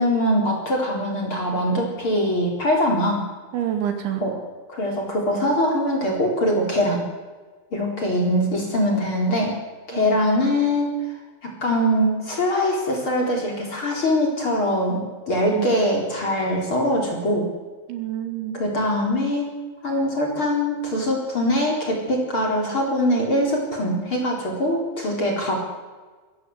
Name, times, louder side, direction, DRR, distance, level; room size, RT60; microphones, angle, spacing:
voice 1, 0.0-3.2 4.2-4.3 4.7-7.0 7.7-9.5 9.9-10.9 11.4-15.0 15.3-17.4 18.5-19.5 19.8-25.5, equal, 30° left, 0 dB, 4.4 m, -22 dB
voice 2, 3.5-4.3 9.9-10.2 15.5-15.8 17.9-18.6, right 10 dB, 75° right, 6 dB, 4.5 m, -28 dB
23.0 x 16.0 x 8.0 m, 1.4 s
omnidirectional pair, 5.4 m